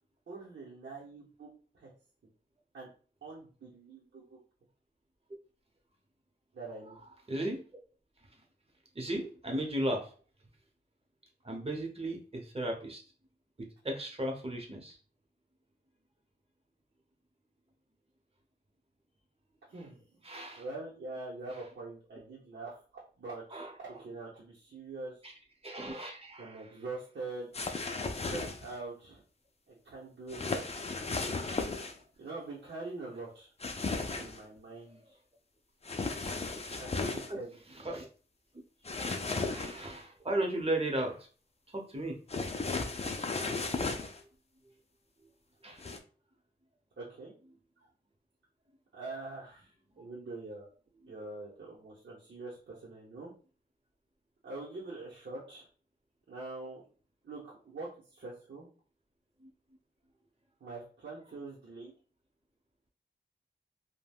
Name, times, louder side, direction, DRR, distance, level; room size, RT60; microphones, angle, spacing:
voice 1, 0.3-1.5 1.7-1.9 2.7-2.9 3.2-4.4 6.5-7.0 19.7-20.1 20.6-22.8 23.2-25.3 26.4-27.5 27.9-29.2 29.7-30.8 32.2-33.5 34.1-35.1 36.0-36.3 36.6-37.6 47.0-47.3 48.9-50.7 51.1-53.3 54.4-55.7 56.3-56.8 57.2-58.7 60.6-61.9, right 3 dB, 80° right, -6 dB, 0.8 m, -44 dB
voice 2, 7.3-7.6 8.9-10.1 11.4-13.0 13.6-15.0 20.2-20.6 23.5-23.7 25.2-25.3 25.6-26.6 36.4-36.8 37.3-37.4 37.8-38.1 39.5-41.2 41.7-42.2 45.6-45.8 50.0-50.1, right 1 dB, 30° right, 1 dB, 0.9 m, -35 dB
sound 1, 27.5-28.8 30.3-32.0 33.6-34.4 35.8-37.3 38.9-40.0 42.3-44.2 45.8-46.0, left 3 dB, 35° left, 0.4 m, -35 dB
3.3 x 2.2 x 2.3 m, 0.39 s
wide cardioid pair, 60°, 18 cm